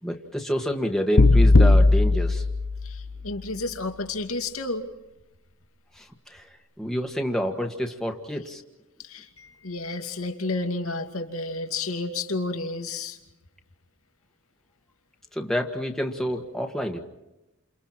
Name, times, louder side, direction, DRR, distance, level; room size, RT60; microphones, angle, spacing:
voice 1, 0.0-2.4 5.9-8.6 15.3-17.0, equal, ahead, 2 dB, 1.6 m, -28 dB
sound 1, 1.2-3.4, left 2 dB, 60° left, 0.9 m, -18 dB
voice 2, 2.8-4.9 9.0-13.2, left 3 dB, 85° left, 5 dB, 2.5 m, -31 dB
29.5 x 28.5 x 4.4 m, 0.95 s
head